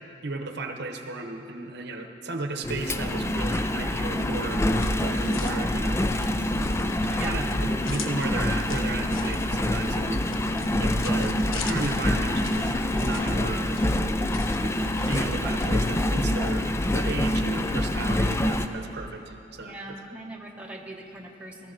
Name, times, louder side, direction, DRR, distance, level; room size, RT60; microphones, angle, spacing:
voice 1, 0.2-4.6 5.0-6.0 7.1-10.2 10.8-13.9 14.6-19.8, right 3 dB, 55° right, 4 dB, 0.9 m, -34 dB
Engine, 2.6-18.7, left 1 dB, 15° left, 0.4 m, -26 dB
sound 1, 4.4-15.2, left 7 dB, 75° left, 0.7 m, -43 dB
voice 2, 6.8-7.4 19.6-21.7, right 2 dB, 5° right, -1 dB, 0.9 m, -41 dB
18.0 x 13.5 x 3.9 m, 2.8 s
head